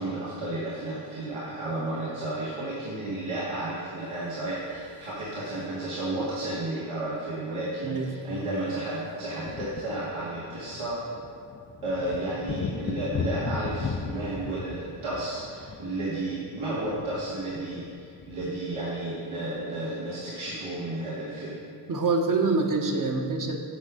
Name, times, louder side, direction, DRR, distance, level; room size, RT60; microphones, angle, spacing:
voice 1, 0.0-11.0 11.8-21.6, right 2 dB, 80° right, -8 dB, 2.2 m, -32 dB
sound 1, 4.2-5.8 7.1-7.2 7.4-7.6 7.9-20.0, left 5 dB, 25° left, 0.4 m, -38 dB
voice 2, 21.9-23.6, right 3 dB, 40° right, 3 dB, 1.2 m, -25 dB
8.4 x 5.5 x 6.3 m, 2.2 s
cardioid pair, 90°, 48 cm